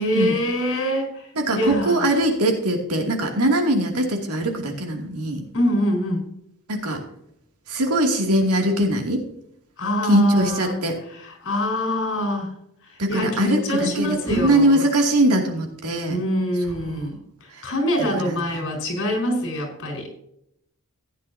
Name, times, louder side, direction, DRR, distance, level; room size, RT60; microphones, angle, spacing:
voice 1, 0.0-1.3 1.5-2.0 5.5-6.3 9.8-10.8 11.2-12.5 12.9-14.8 16.1-20.1, equal, 60° left, 1 dB, 4.8 m, -25 dB
voice 2, 1.3-5.5 6.7-7.0 7.7-9.3 10.0-11.0 13.0-16.2 16.7-17.1 17.5-17.7 18.0-18.6, right 1 dB, 85° right, 2 dB, 2.5 m, -22 dB
15.0 x 9.5 x 2.8 m, 0.76 s
head